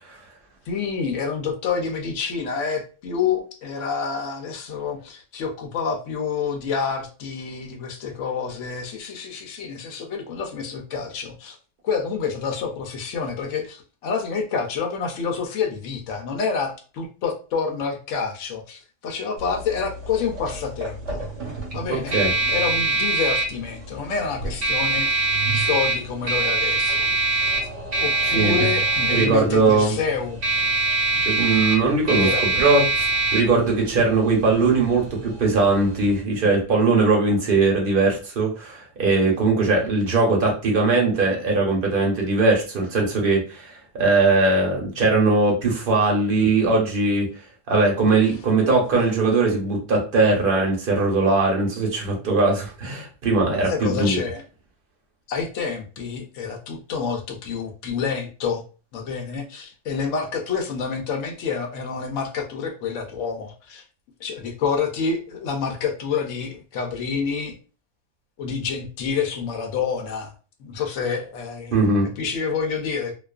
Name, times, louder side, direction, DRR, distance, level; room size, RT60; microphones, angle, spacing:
voice 1, 0.7-11.6 11.8-21.2 21.7-22.2 22.5-27.5 28.0-30.4 32.2-32.4 48.2-48.4 53.7-54.4 55.3-58.6 58.9-63.8 64.2-67.6 68.4-70.3 70.6-71.9 72.2-73.1, left 5 dB, 80° left, 2 dB, 0.9 m, -28 dB
sound 1, 19.4-36.2, right 2 dB, 75° right, 1.1 m, -24 dB
voice 2, 21.9-22.3 28.3-28.6 29.1-30.0 31.2-32.3 32.6-33.1 33.3-47.3 47.7-54.2 71.7-72.1, right 3 dB, 50° right, -1 dB, 0.9 m, -20 dB
2.4 x 2.3 x 2.3 m, 0.36 s
omnidirectional pair, 1.3 m